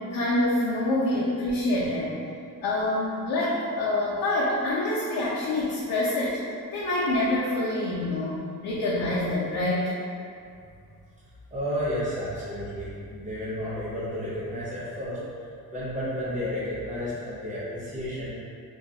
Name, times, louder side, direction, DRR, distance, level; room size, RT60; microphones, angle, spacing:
voice 1, 0.0-2.2 2.6-6.4 6.7-9.9, left 1 dB, 70° left, -7 dB, 0.5 m, -26 dB
voice 2, 11.5-15.2 15.7-18.3, equal, 20° right, -10 dB, 0.8 m, -32 dB
2.4 x 2.2 x 2.7 m, 2.4 s
wide cardioid pair, 160°, 36 cm